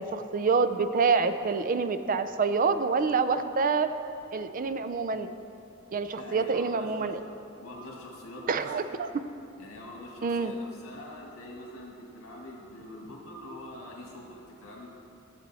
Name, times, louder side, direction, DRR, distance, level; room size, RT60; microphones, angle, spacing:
voice 1, 0.0-3.9 4.3-5.3 5.9-7.2 8.5-9.1 10.2-10.5, right 4 dB, 40° right, 10 dB, 0.4 m, -27 dB
voice 2, 6.1-7.1 7.6-8.6 9.6-14.9, left 1 dB, 80° left, -3 dB, 1.6 m, -44 dB
12.5 x 7.4 x 4.1 m, 2.7 s
head